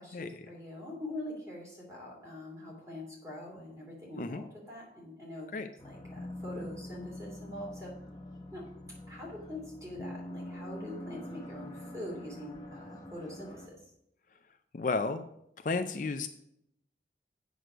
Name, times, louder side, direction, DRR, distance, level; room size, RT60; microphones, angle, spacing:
voice 1, 0.0-5.5 5.8-7.9 8.5-8.7 9.1-13.8, left 1 dB, 20° right, -2 dB, 2.8 m, -44 dB
sound 1, 5.8-13.7, left 1 dB, 20° left, 0.9 m, -44 dB
voice 2, 14.7-15.3 15.6-16.3, left 3 dB, 45° left, 8 dB, 0.4 m, -32 dB
8.0 x 6.3 x 5.0 m, 0.75 s
head